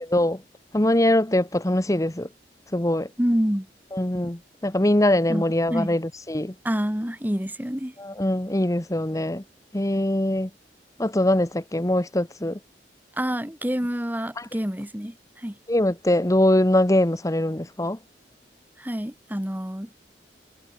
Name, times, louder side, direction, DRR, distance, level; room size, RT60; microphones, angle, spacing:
voice 1, 0.7-2.3 2.7-3.1 3.9-6.5 8.0-9.4 9.7-10.5 11.0-12.6 14.4-14.5 15.7-18.0, left 1 dB, 20° left, 1.3 m, -22 dB
voice 2, 3.2-3.7 5.3-5.4 5.7-6.0 6.6-7.9 13.2-15.6 18.8-20.0, equal, 10° right, 2.0 m, -27 dB
head